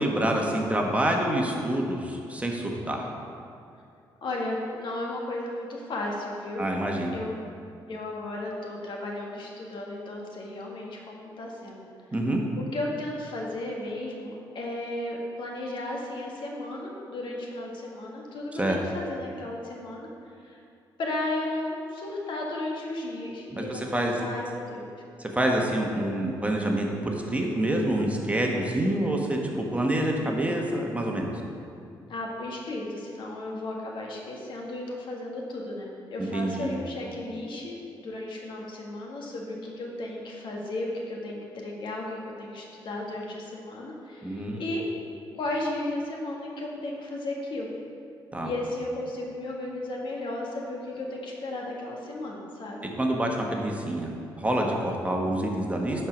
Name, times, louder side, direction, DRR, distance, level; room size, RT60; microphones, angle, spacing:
voice 1, 0.0-3.1 6.6-7.1 12.1-12.4 18.5-18.8 23.5-24.1 25.2-31.3 36.3-36.8 44.2-44.6 48.3-48.5 53.0-54.1 54.4-56.1, right 1 dB, 15° right, 0 dB, 1.3 m, -27 dB
voice 2, 4.2-6.7 7.1-7.5 7.9-11.9 12.6-20.1 20.4-20.6 21.0-24.8 32.1-37.8 38.0-44.8 45.3-47.7 48.4-52.8, left 1 dB, 65° left, -1 dB, 1.6 m, -34 dB
10.5 x 4.6 x 5.2 m, 2.5 s
cardioid pair, 70°, 9 cm